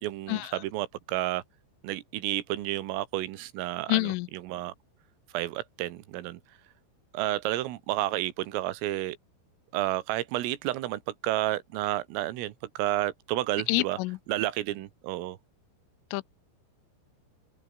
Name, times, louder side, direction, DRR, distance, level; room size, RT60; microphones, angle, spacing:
voice 1, 0.0-1.4 1.8-4.7 5.3-6.4 7.1-9.2 9.7-14.0 14.3-15.4, right 15 dB, 85° right, 4.2 m, -31 dB
voice 2, 3.9-4.3 13.7-14.2 16.1-16.3, left 22 dB, 85° left, 3.1 m, -27 dB
open air
omnidirectional pair, 5.9 m